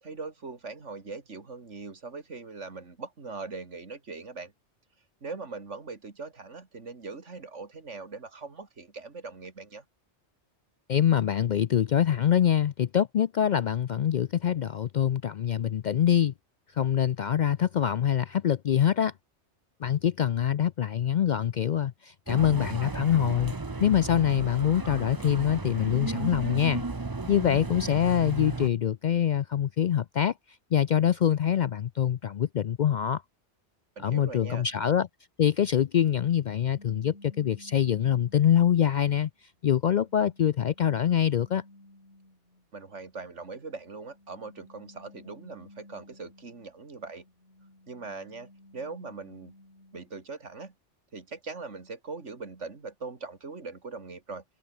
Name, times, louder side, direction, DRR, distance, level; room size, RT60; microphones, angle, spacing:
voice 1, 0.0-4.5 5.2-9.8 34.0-34.7 42.7-47.2 47.9-49.5 49.9-50.7 51.1-54.4, right 4 dB, 90° right, 2.8 m, -41 dB
voice 2, 10.9-16.3 16.7-19.1 19.8-23.5 23.8-26.8 27.3-30.3 30.7-33.2 34.0-35.1 35.4-39.3 39.6-41.6, left 9 dB, 60° left, 0.5 m, -24 dB
sound 1, 22.3-28.7, right 3 dB, 20° right, 0.8 m, -34 dB
sound 2, 36.7-38.9 39.5-42.7 43.8-46.8 47.2-50.2, left 1 dB, 80° left, 8.3 m, -55 dB
omnidirectional pair, 1.2 m